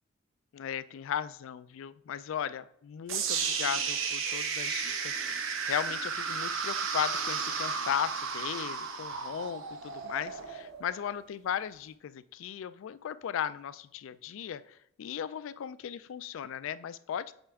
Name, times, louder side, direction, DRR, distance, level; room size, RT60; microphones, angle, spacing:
voice 1, 0.5-17.3, left 9 dB, 70° left, 16 dB, 0.3 m, -36 dB
sound 1, 3.1-11.1, right 5 dB, 75° right, 0.8 m, -33 dB
8.0 x 3.3 x 3.5 m, 0.71 s
head